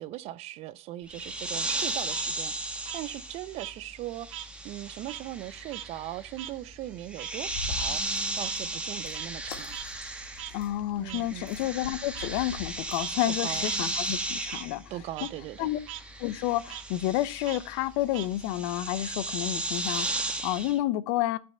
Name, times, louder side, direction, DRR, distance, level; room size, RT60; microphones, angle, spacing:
voice 1, 0.0-9.8 11.0-11.5 13.3-13.7 14.9-15.7, right 14 dB, 35° right, 0.5 m, -39 dB
sound 1, 1.1-10.8 11.1-20.8, right 2 dB, 5° right, 1.2 m, -35 dB
Frog, 1.6-4.5 4.8-9.5 9.7-9.9 10.4-10.5 11.1-11.2 12.1-12.3 12.8-13.1 13.6-13.8 14.1-14.6 15.0-15.3 15.6-16.0 16.7-16.8 17.5-18.7, right 13 dB, 65° right, 1.0 m, -42 dB
sound 2, 7.4-14.6, left 5 dB, 80° left, 2.6 m, -44 dB
voice 2, 10.5-14.8 15.6-15.8 16.2-21.4, left 15 dB, 50° left, 0.7 m, -30 dB
9.6 x 5.3 x 5.6 m
supercardioid pair, 130°, 18 cm